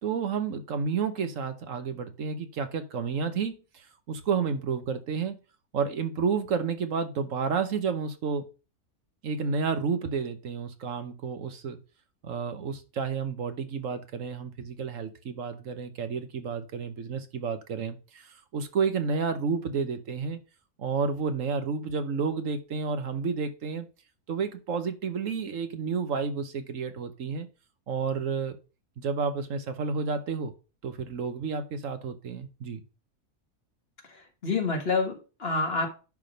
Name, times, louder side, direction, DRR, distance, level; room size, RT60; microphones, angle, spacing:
voice 1, 0.0-5.4 5.7-8.5 9.2-11.8 12.2-20.4 20.8-23.9 24.3-27.5 27.9-28.6 29.0-30.5 30.8-32.8, right 5 dB, 65° right, 1.2 m, -31 dB
voice 2, 34.1-35.9, left 4 dB, 45° left, 1.7 m, -28 dB
10.5 x 3.6 x 5.1 m
omnidirectional pair, 1.5 m